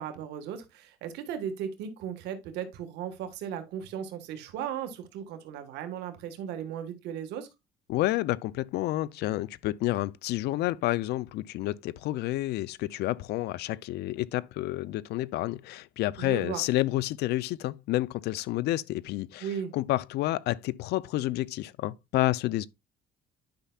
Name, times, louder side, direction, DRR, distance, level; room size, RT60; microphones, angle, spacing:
voice 1, 0.0-7.5 16.2-16.6 19.4-19.7, right 8 dB, 85° right, 1.5 m, -36 dB
voice 2, 7.9-19.5 19.7-22.7, left 16 dB, 75° left, 0.4 m, -29 dB
10.5 x 5.6 x 2.3 m
cardioid pair, 110°, 17 cm